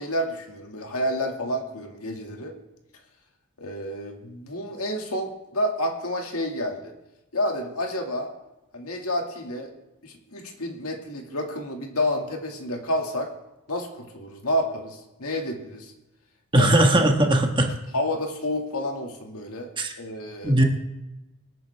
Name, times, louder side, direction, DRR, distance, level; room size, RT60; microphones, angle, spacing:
voice 1, 0.0-2.5 3.6-6.9 7.3-8.3 8.7-9.7 10.0-13.3 13.7-15.9 16.5-16.7 17.9-19.7 20.0-20.6, left 1 dB, 75° left, 2 dB, 2.2 m, -29 dB
voice 2, 16.5-17.7 19.8-19.9 20.4-20.6, right 1 dB, 20° right, 3 dB, 1.4 m, -19 dB
25.5 x 9.0 x 3.5 m, 0.97 s
head